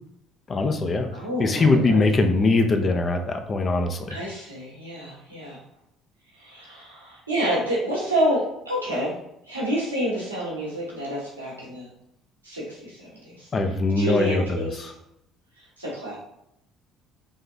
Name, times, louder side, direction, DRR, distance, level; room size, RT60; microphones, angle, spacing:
voice 1, 0.5-1.1 1.4-4.2 13.5-14.9, left 3 dB, 35° left, 5 dB, 0.5 m, -22 dB
voice 2, 1.1-2.0 4.1-5.6 6.3-9.1 9.4-11.9 12.4-13.5 14.0-14.8 15.6-16.2, equal, 90° right, -7 dB, 1.1 m, -28 dB
3.6 x 3.3 x 2.7 m, 0.79 s
figure-of-eight pair, 55°, 0 cm